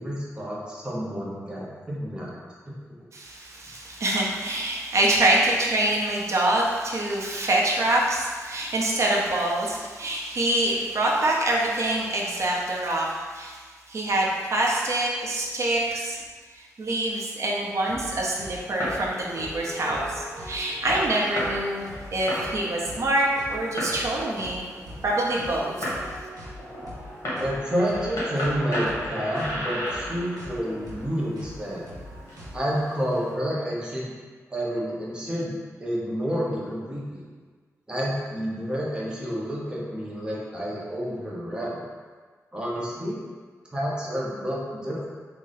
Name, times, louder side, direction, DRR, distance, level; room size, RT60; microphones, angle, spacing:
voice 1, 0.0-2.4 2.7-2.8 27.4-31.8 32.5-34.1 34.5-37.3 37.9-41.8 42.5-43.2 43.7-45.1, equal, 15° right, -6 dB, 0.8 m, -29 dB
voice 2, 3.1-16.2 16.5-21.9 22.1-24.7 25.0-25.9, right 1 dB, 55° right, -3 dB, 0.6 m, -25 dB
sound 1, 17.9-32.8, equal, 80° right, 1.1 m, -42 dB
Fireworks, 18.5-33.3, equal, 55° left, 1.3 m, -36 dB
3.7 x 2.1 x 4.0 m, 1.5 s
wide cardioid pair, 130°, 6 cm